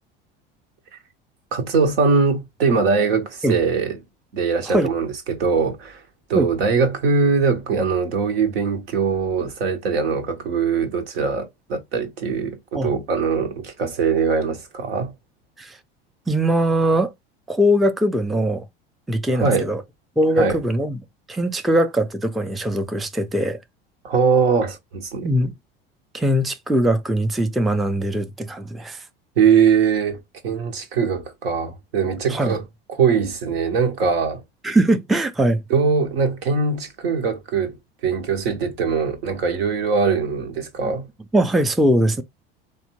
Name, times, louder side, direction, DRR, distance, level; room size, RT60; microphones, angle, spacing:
voice 1, 1.5-4.0 4.3-6.0 6.3-15.1 19.3-19.7 20.4-20.6 24.0-25.3 29.4-30.2 30.4-32.6 32.9-34.4 35.7-37.8 38.0-41.1, right 5 dB, 85° right, 1.0 m, -21 dB
voice 2, 16.3-17.1 17.5-18.7 19.1-19.8 20.2-21.0 21.3-23.6 25.2-25.5 26.1-29.0 32.3-32.6 34.6-35.6 40.8-40.9 41.3-42.2, right 1 dB, ahead, 0.3 m, -21 dB
3.3 x 2.2 x 2.9 m
hypercardioid pair, 85°, 30 cm